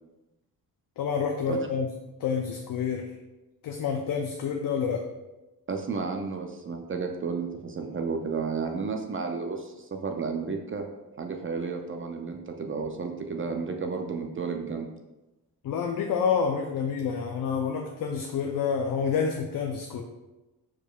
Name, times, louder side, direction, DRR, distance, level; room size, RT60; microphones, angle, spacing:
voice 1, 1.0-1.9 2.2-3.1 3.6-5.1 15.6-20.0, left 6 dB, 60° left, 3 dB, 0.6 m, -28 dB
voice 2, 5.7-10.9 11.2-14.9, right 5 dB, 35° right, 4 dB, 0.5 m, -32 dB
4.8 x 4.5 x 2.3 m, 1.0 s
cardioid pair, 85°, 38 cm